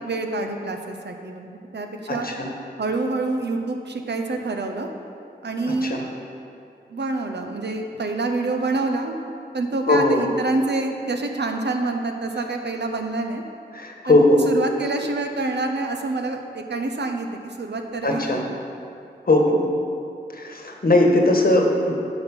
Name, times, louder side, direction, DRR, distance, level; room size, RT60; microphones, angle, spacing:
voice 1, 0.0-2.3 2.8-4.9 5.4-6.0 6.9-9.2 9.5-13.4 14.1-14.2 14.5-18.5, right 2 dB, 70° right, 4 dB, 0.8 m, -27 dB
voice 2, 2.1-2.5 5.6-6.0 9.9-10.2 13.7-14.4 18.0-18.4 19.3-19.6 20.3-21.9, left 1 dB, 55° left, 1 dB, 1.4 m, -19 dB
9.6 x 6.1 x 5.4 m, 2.5 s
cardioid pair, 45°, 18 cm